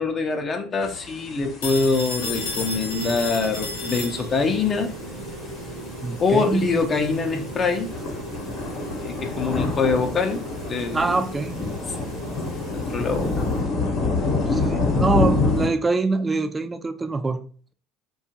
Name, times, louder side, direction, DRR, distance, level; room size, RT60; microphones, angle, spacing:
voice 1, 0.0-4.9 6.2-7.9 9.0-10.4 10.7-11.1 12.7-13.5, left 4 dB, 35° left, 0.5 m, -24 dB
sound 1, 0.8-15.7, left 3 dB, 55° left, 0.8 m, -28 dB
Telephone, 1.6-4.6, left 4 dB, 90° left, 0.7 m, -32 dB
sound 2, 2.2-13.6, right 1 dB, 60° right, 0.9 m, -37 dB
voice 2, 6.0-6.7 10.9-11.6 14.5-17.4, right 3 dB, 20° right, 0.3 m, -24 dB
2.8 x 2.3 x 2.7 m
hypercardioid pair, 75°, 0 cm